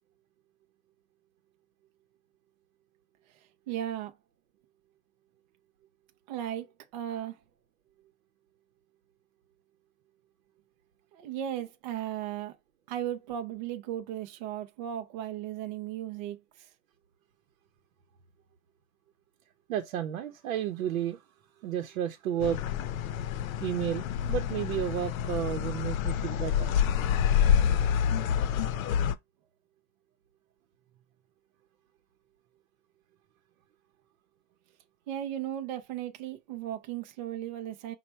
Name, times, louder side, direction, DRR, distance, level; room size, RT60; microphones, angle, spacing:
voice 1, 3.7-4.1 6.3-7.4 11.1-12.6 12.9-16.7 35.1-37.9, right 11 dB, 35° right, 0.4 m, -36 dB
voice 2, 19.7-21.2 21.6-22.6 23.6-26.7, right 10 dB, 85° right, 0.8 m, -32 dB
sound 1, 22.4-29.1, left 8 dB, 80° left, 0.6 m, -27 dB
5.5 x 2.3 x 4.2 m
supercardioid pair, 170°, 40 cm